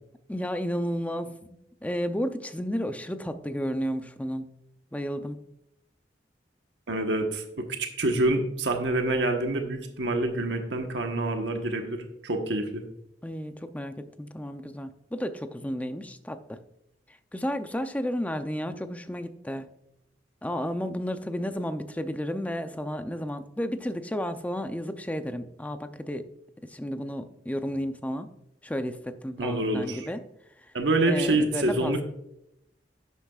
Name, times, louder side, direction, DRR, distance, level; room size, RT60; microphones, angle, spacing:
voice 1, 0.3-4.5 4.9-5.4 13.2-16.6 17.3-19.7 20.4-26.3 26.6-28.3 28.6-30.2 31.1-32.0, equal, 10° left, 9 dB, 0.6 m, -32 dB
voice 2, 6.9-12.8 29.4-30.1 30.7-32.0, right 2 dB, 85° right, 4 dB, 1.3 m, -27 dB
11.5 x 8.2 x 2.4 m, 0.80 s
head